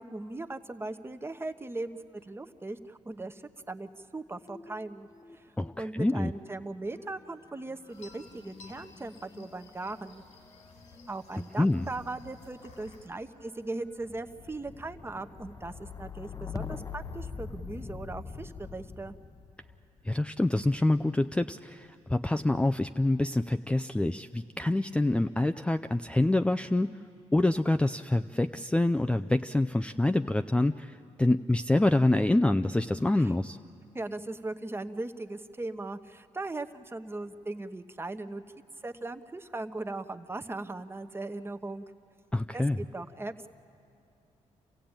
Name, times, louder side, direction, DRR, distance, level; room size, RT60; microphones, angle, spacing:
voice 1, 0.0-5.1 5.3-5.4 5.8-10.2 11.1-19.2 33.2-33.3 33.9-38.4 38.8-41.8 42.5-43.5, right 2 dB, 20° right, 8 dB, 1.0 m, -39 dB
sound 1, 4.4-5.8 6.0-21.1 21.8-22.4, left 5 dB, 30° left, 0.8 m, -45 dB
voice 2, 5.6-6.3 11.6-11.9 20.0-26.9 27.3-33.6 42.3-42.8, left 2 dB, 10° left, 9 dB, 0.4 m, -26 dB
sound 2, 7.9-13.1, left 4 dB, 85° left, 3.7 m, -55 dB
27.5 x 16.0 x 8.9 m, 2.6 s
cardioid pair, 70°, 13 cm